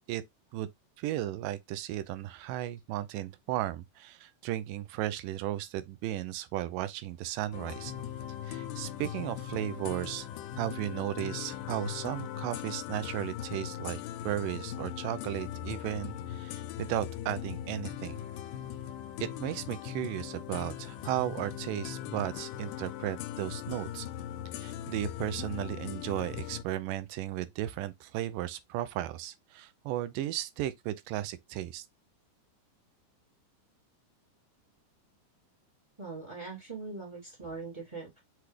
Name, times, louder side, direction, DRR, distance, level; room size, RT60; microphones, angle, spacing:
voice 1, 1.0-7.9 8.4-10.3 10.6-18.1 19.2-24.1 24.6-31.9, right 13 dB, 90° right, 2.2 m, -35 dB
sound 1, 7.5-26.6, left 11 dB, 85° left, 2.1 m, -39 dB
voice 2, 36.0-38.2, right 4 dB, 50° right, 0.3 m, -41 dB
6.0 x 2.4 x 3.3 m
omnidirectional pair, 3.8 m